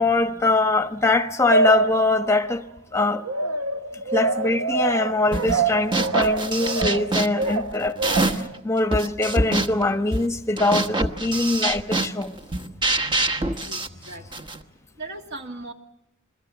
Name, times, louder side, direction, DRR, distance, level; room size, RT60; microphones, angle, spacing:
voice 1, 0.0-3.2 4.1-8.0 8.2-12.3, left 2 dB, 15° left, 1.1 m, -23 dB
sound 1, 1.5-2.5 3.3-8.5, right 3 dB, 80° right, 1.0 m, -25 dB
sound 2, 5.3-5.6 5.9-8.6 8.9-14.6, right 2 dB, 20° right, 1.2 m, -25 dB
voice 2, 13.6-14.5 14.9-15.7, right 2 dB, 50° right, 2.4 m, -38 dB
28.0 x 22.5 x 7.1 m
head